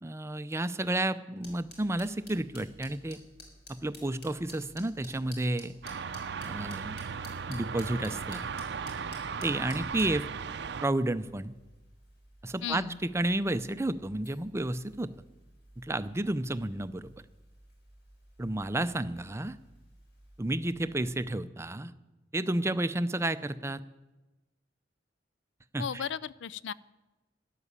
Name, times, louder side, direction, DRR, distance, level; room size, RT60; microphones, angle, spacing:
voice 1, 0.0-3.2 3.7-5.7 6.4-7.0 7.5-8.5 9.4-10.2 10.8-11.5 12.4-15.1 15.8-17.2 18.4-19.6 20.4-21.9 22.3-23.8 25.7-26.0, right 1 dB, 15° right, 13 dB, 0.5 m, -31 dB
sound 1, 1.4-21.3, left 1 dB, 60° left, 4.1 m, -54 dB
sound 2, 5.8-10.9, right 6 dB, 60° right, 0.6 m, -37 dB
voice 2, 12.6-13.0 25.8-26.7, left 7 dB, 75° left, 20 dB, 0.4 m, -35 dB
12.5 x 11.0 x 8.3 m, 1.1 s
head